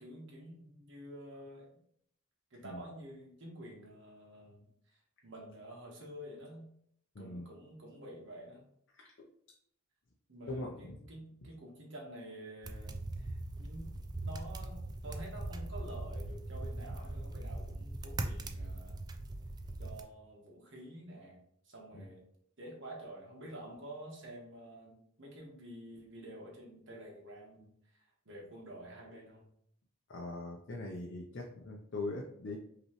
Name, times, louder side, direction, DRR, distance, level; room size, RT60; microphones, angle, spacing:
voice 1, 0.0-1.7 2.5-6.7 7.2-8.6 10.3-18.9 19.8-21.4 21.6-22.2 22.6-29.5, right 1 dB, 65° right, -1 dB, 1.4 m, -49 dB
voice 2, 7.1-7.5 8.9-9.3 10.5-11.0 21.9-22.0 30.1-32.6, left 2 dB, 60° left, 0 dB, 0.6 m, -41 dB
sound 1, 12.6-20.0, right 2 dB, 20° right, 0.3 m, -40 dB
5.4 x 3.0 x 3.1 m, 0.70 s
head